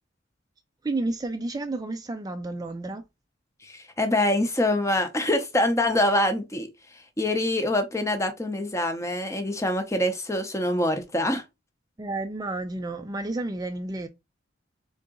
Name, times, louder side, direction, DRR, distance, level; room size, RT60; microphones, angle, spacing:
voice 1, 0.8-3.0 12.0-14.1, right 2 dB, 20° right, 0.4 m, -31 dB
voice 2, 3.6-6.7 7.2-11.4, left 1 dB, 15° left, 0.7 m, -25 dB
3.8 x 3.7 x 3.7 m
head